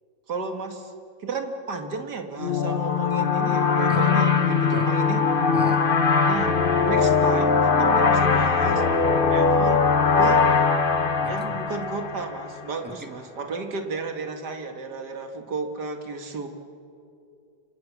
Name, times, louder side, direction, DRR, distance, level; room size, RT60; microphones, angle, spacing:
voice 1, 0.3-0.9 1.2-5.3 6.2-6.5 6.8-8.8 9.3-9.9 10.2-10.5 11.2-16.5, right 4 dB, 55° right, 5 dB, 2.5 m, -33 dB
sound 1, 2.4-12.7, left 5 dB, 35° left, 0.9 m, -21 dB
voice 2, 5.5-5.9 11.2-11.3 12.8-13.1, right 1 dB, 5° right, 5 dB, 1.7 m, -35 dB
28.5 x 26.5 x 7.4 m, 2.6 s
omnidirectional pair, 2.1 m